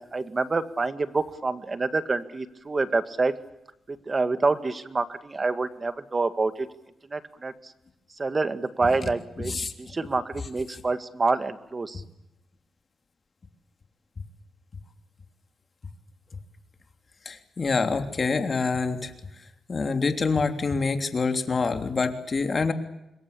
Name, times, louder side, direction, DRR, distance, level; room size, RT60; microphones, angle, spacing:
voice 1, 0.0-3.3 3.9-6.7 7.1-7.5 8.2-12.0, right 3 dB, 30° right, 11 dB, 2.0 m, -27 dB
voice 2, 17.2-19.1 19.7-22.7, left 4 dB, 35° left, 7 dB, 3.2 m, -26 dB
26.5 x 22.0 x 8.5 m, 0.87 s
cardioid pair, 100°, 0 cm